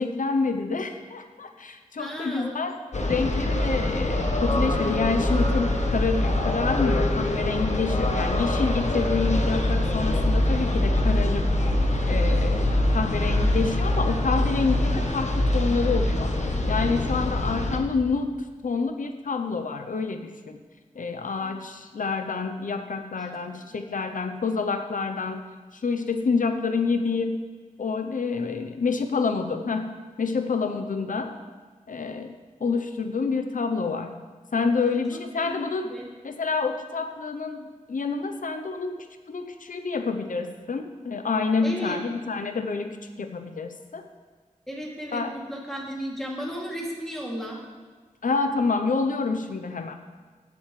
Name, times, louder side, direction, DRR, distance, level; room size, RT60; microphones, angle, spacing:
voice 1, 0.0-2.8 3.1-11.4 12.1-18.3 18.6-20.6 21.0-25.4 25.7-27.5 27.8-31.4 31.9-32.3 32.6-34.1 34.5-35.9 36.2-39.0 39.3-44.0 45.1-45.3 48.2-49.9, left 4 dB, 75° left, 6 dB, 0.7 m, -28 dB
voice 2, 2.0-2.6 21.3-21.6 23.2-23.3 24.1-24.2 35.1-36.1 41.6-42.0 44.7-47.6, equal, 5° left, -4 dB, 2.6 m, -35 dB
sound 1, 2.9-17.8, left 1 dB, 55° left, 1.1 m, -24 dB
17.0 x 7.0 x 3.3 m, 1.4 s
wide cardioid pair, 70°, 14 cm